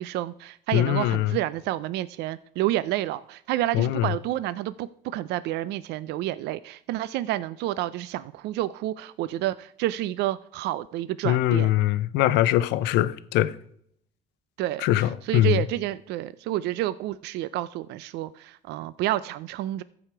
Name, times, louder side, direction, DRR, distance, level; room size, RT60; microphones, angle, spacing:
voice 1, 0.0-11.7 14.6-19.8, right 14 dB, 80° right, 0.4 m, -29 dB
voice 2, 0.7-1.3 3.7-4.1 11.2-13.5 14.8-15.6, left 13 dB, 90° left, 0.6 m, -22 dB
14.5 x 4.9 x 4.5 m
cardioid pair, 110°, 17 cm